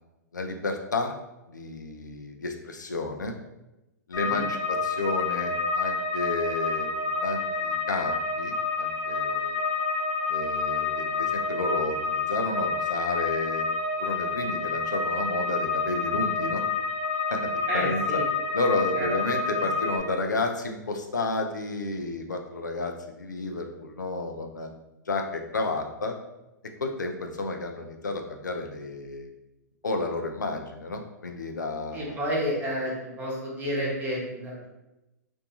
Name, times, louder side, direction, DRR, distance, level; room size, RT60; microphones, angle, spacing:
voice 1, 0.3-1.2 1.5-3.4 4.1-9.6 10.3-13.7 14.0-16.6 17.3-18.2 18.5-24.7 25.1-26.2 26.8-29.3 29.8-32.2, left 2 dB, 85° left, 4 dB, 0.4 m, -31 dB
sound 1, 4.1-20.0, left 4 dB, 30° left, 0.6 m, -28 dB
voice 2, 17.7-18.2 18.9-19.1 31.9-34.7, equal, 20° right, -4 dB, 0.9 m, -30 dB
2.6 x 2.2 x 2.8 m, 0.96 s
figure-of-eight pair, 110°, 10 cm